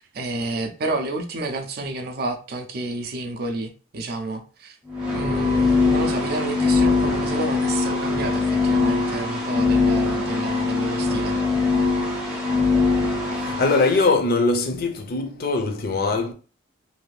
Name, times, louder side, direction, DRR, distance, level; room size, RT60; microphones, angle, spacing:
voice 1, 0.0-4.8 5.1-11.4, right 2 dB, 50° right, 0.4 m, -30 dB
sound 1, 4.9-14.0, left 3 dB, 5° right, 0.6 m, -22 dB
voice 2, 13.4-16.3, left 3 dB, 50° left, 0.5 m, -21 dB
2.7 x 2.4 x 3.1 m
head